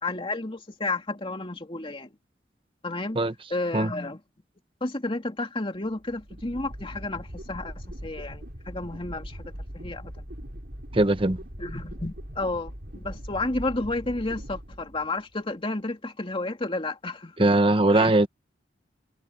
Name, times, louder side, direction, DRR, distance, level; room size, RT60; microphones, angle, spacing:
voice 1, 0.0-2.1 2.8-3.2 3.5-4.2 4.8-7.7 8.0-9.4 9.7-10.3 11.6-17.5 17.9-18.3, left 2 dB, 30° left, 2.5 m, -31 dB
sound 1, 5.8-15.3, equal, 65° right, 6.0 m, -40 dB
voice 2, 10.9-11.4 17.4-18.3, right 2 dB, 30° right, 1.1 m, -20 dB
head